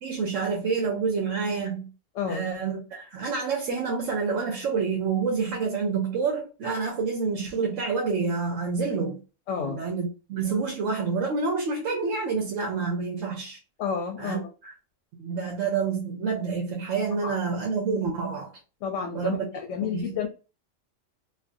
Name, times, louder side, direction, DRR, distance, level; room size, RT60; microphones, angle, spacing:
voice 1, 0.0-1.9 2.3-9.2 9.6-13.6 14.2-14.7 15.2-18.5 19.1-19.5 19.9-20.2, right 5 dB, 80° right, 1.0 m, -28 dB
voice 2, 9.5-9.8 13.8-14.4 17.2-17.4 18.8-19.4 19.7-20.3, left 7 dB, 75° left, 0.9 m, -30 dB
2.5 x 2.4 x 2.5 m
omnidirectional pair, 1.3 m